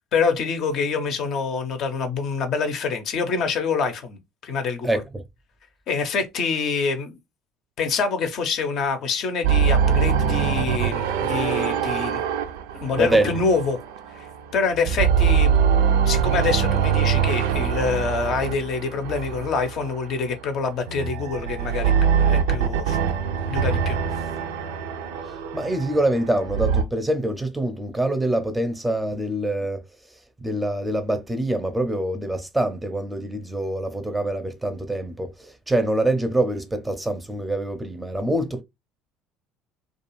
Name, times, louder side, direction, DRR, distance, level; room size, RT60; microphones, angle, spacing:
voice 1, 0.1-5.0 5.9-7.2 7.8-12.2 12.8-13.8 14.1-15.5 16.1-21.9 22.2-23.0 23.5-24.0, left 5 dB, 55° left, 0.6 m, -26 dB
voice 2, 4.8-5.2 13.0-13.4 25.3-29.8 30.4-38.6, right 1 dB, 10° right, 0.5 m, -25 dB
sound 1, 9.4-14.4 14.7-20.1 20.8-26.8, right 7 dB, 75° right, 0.3 m, -23 dB
2.3 x 2.3 x 2.9 m
hypercardioid pair, 65°, 0 cm